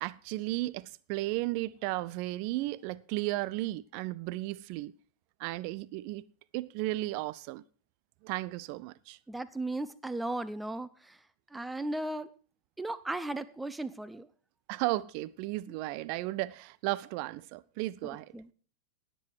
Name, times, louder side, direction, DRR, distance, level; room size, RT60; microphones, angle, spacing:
voice 1, 0.0-4.9 5.4-6.3 6.5-7.6 8.2-9.2 14.7-18.3, right 18 dB, 45° right, 0.5 m, -34 dB
voice 2, 9.3-11.2 11.5-12.3 12.8-14.3 18.0-18.5, right 2 dB, 5° right, 0.8 m, -36 dB
18.5 x 7.8 x 4.7 m
figure-of-eight pair, 90°, 0 cm